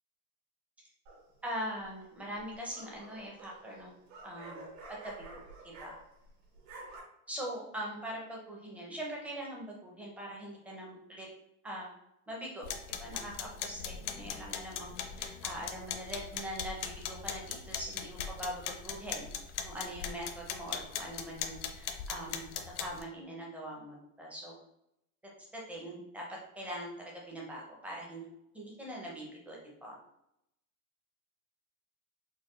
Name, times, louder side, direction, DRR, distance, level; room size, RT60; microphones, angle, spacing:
sound 1, 1.1-1.5 2.4-6.3 6.5-7.0, right 2 dB, 65° right, 1.3 m, -50 dB
voice 1, 1.4-3.9 4.2-4.6 5.0-6.0 7.3-11.3 11.6-11.9 12.3-12.6 13.0-19.3 19.6-22.5 22.8-24.6 25.5-26.2 26.6-28.3 28.5-30.0, equal, 5° right, -3 dB, 0.5 m, -42 dB
sound 2, 12.6-23.0, left 8 dB, 60° left, 0.5 m, -40 dB
4.3 x 2.1 x 3.0 m, 0.80 s
supercardioid pair, 150°, 42 cm